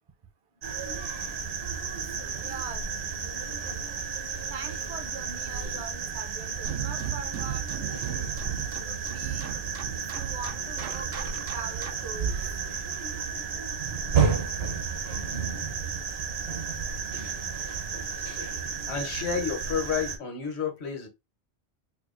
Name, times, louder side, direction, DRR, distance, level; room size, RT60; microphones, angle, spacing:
sound 1, 0.6-20.2, right 6 dB, 65° right, 1.1 m, -32 dB
voice 1, 2.0-2.8 3.3-4.1 4.5-8.3 8.8-9.5 9.9-12.4 14.7-14.8, right 5 dB, 40° right, 0.5 m, -42 dB
sound 2, 6.6-12.2, right 10 dB, 85° right, 0.9 m, -36 dB
voice 2, 18.9-21.1, left 6 dB, 70° left, 1.3 m, -30 dB
4.8 x 2.4 x 2.5 m
omnidirectional pair, 1.2 m